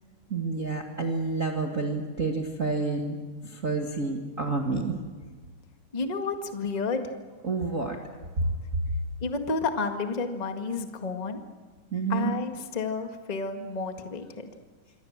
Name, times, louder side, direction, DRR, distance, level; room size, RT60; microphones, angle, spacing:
voice 1, 0.3-5.0 7.4-8.0 8.4-8.5 11.9-12.3, right 3 dB, 30° right, 1 dB, 1.8 m, -29 dB
voice 2, 5.9-7.1 9.2-11.4 12.1-14.5, left 4 dB, 20° left, 5 dB, 1.0 m, -31 dB
27.0 x 23.0 x 7.4 m, 1.4 s
omnidirectional pair, 3.7 m